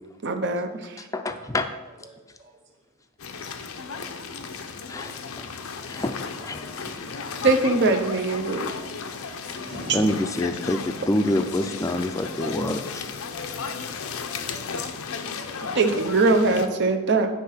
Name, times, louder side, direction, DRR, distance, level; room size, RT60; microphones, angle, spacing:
voice 1, 0.2-1.1 7.4-8.7 15.7-17.3, right 3 dB, 55° right, 5 dB, 0.8 m, -22 dB
voice 2, 1.1-1.7 4.9-5.5 5.7-7.0 9.9-13.1 13.9-14.0, left 1 dB, 15° left, 7 dB, 0.5 m, -27 dB
voice 3, 2.0-2.6 3.5-4.8 5.6-6.0 8.5-9.3 9.6-10.2 14.7-15.9, equal, 35° right, 0 dB, 1.5 m, -44 dB
sound 1, 3.2-16.7, left 5 dB, 85° left, 0.6 m, -34 dB
9.7 x 3.7 x 5.7 m, 1.2 s
head